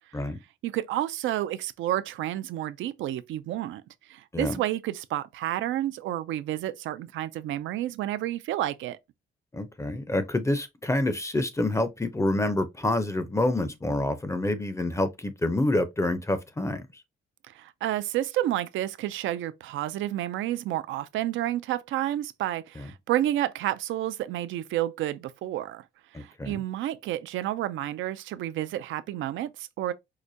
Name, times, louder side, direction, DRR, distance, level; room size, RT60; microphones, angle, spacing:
voice 1, 0.6-3.8 4.1-9.0 17.5-25.8 26.1-29.9, right 13 dB, 75° right, 0.4 m, -30 dB
voice 2, 9.5-16.9 22.8-22.9 26.1-26.6, left 1 dB, 15° left, 0.5 m, -27 dB
4.8 x 2.1 x 2.6 m
cardioid pair, 90°, 20 cm